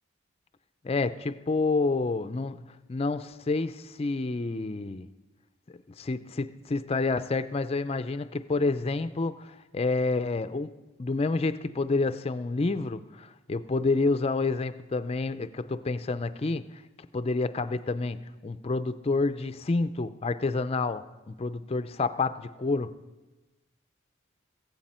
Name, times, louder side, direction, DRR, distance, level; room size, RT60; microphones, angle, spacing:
voice 1, 0.8-5.1 6.0-16.7 17.1-23.0, left 3 dB, 30° left, 0.4 m, -29 dB
16.5 x 15.0 x 4.3 m
head